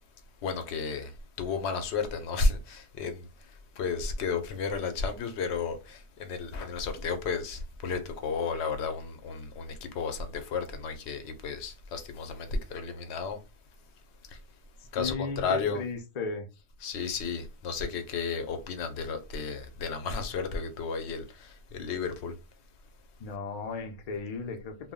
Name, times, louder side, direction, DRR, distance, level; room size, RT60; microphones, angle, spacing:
voice 1, 0.4-1.1 1.4-3.3 3.8-13.4 14.9-15.8 16.8-22.3, left 4 dB, 75° left, 0.8 m, -32 dB
voice 2, 14.8-16.5 23.2-24.9, left 4 dB, 55° left, 0.4 m, -36 dB
2.2 x 2.0 x 3.6 m
omnidirectional pair, 1.2 m